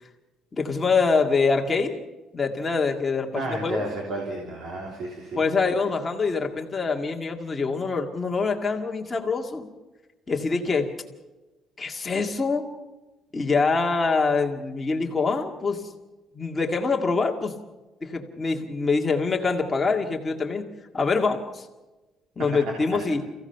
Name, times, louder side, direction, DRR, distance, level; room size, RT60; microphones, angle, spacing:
voice 1, 0.5-2.0 2.3-3.8 5.4-9.7 10.3-10.9 11.8-12.6 13.3-15.8 16.3-17.6 18.0-20.7 20.9-21.7 22.4-23.2, left 4 dB, 15° left, 2 dB, 2.0 m, -25 dB
voice 2, 3.3-5.4 22.9-23.0, right 1 dB, 50° right, 0 dB, 3.2 m, -32 dB
29.5 x 16.0 x 5.8 m, 1.1 s
cardioid pair, 175°, 0 cm